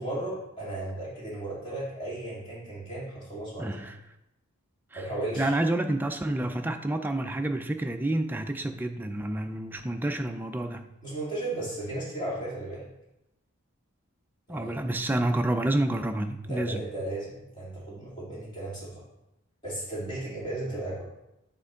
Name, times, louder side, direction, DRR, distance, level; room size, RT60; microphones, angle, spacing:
voice 1, 0.0-3.8 4.9-5.5 11.0-12.9 14.5-14.8 16.4-19.0 19.6-21.0, right 1 dB, 25° left, -7 dB, 2.2 m, -35 dB
voice 2, 3.6-4.0 4.9-5.0 5.4-10.9 14.5-16.8, right 1 dB, 10° right, 6 dB, 0.3 m, -29 dB
7.6 x 4.4 x 3.6 m, 0.90 s
head